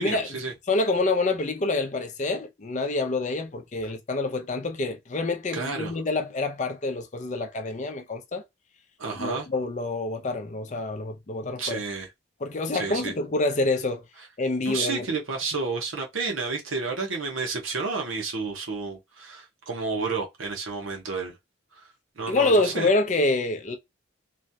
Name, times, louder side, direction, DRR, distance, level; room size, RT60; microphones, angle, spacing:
voice 1, 0.0-0.5 5.5-6.0 9.0-9.5 11.6-12.1 12.7-13.1 14.7-21.4 21.7-21.9 22.2-22.9, right 4 dB, 80° right, 0.8 m, -31 dB
voice 2, 0.7-8.4 9.2-11.8 12.4-14.0 14.4-15.1 22.3-23.8, left 2 dB, 35° left, 0.5 m, -27 dB
3.0 x 2.2 x 2.7 m
head